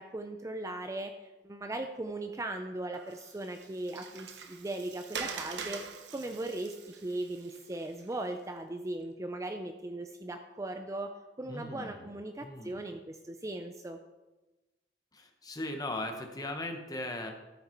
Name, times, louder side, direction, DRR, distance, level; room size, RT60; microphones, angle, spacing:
voice 1, 0.0-5.8 6.1-6.8 7.0-14.0, right 2 dB, 20° right, 6 dB, 0.4 m, -38 dB
Water, 2.9-8.3, right 6 dB, 75° right, 0.8 m, -44 dB
voice 2, 11.5-12.1 12.4-12.8 15.1-17.3, left 1 dB, 20° left, 4 dB, 1.1 m, -38 dB
13.0 x 5.7 x 4.4 m, 1.1 s
head